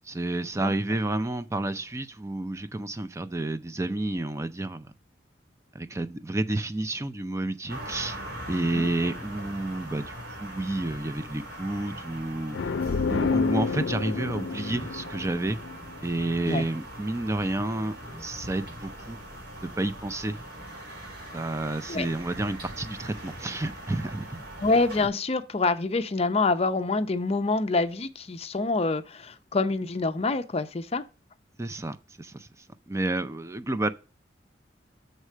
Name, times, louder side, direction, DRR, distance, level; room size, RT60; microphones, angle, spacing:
voice 1, 0.0-4.9 5.7-12.6 13.1-15.6 16.0-17.9 18.2-19.2 19.8-20.4 21.3-24.5 31.6-32.5 32.9-33.9, right 2 dB, 15° right, 0.5 m, -30 dB
sound 1, 7.7-25.1, right 1 dB, 65° right, 5.1 m, -41 dB
sound 2, 12.5-16.2, left 4 dB, 90° left, 0.5 m, -29 dB
voice 2, 24.6-31.0, left 3 dB, 35° left, 0.6 m, -26 dB
6.6 x 4.8 x 6.4 m
head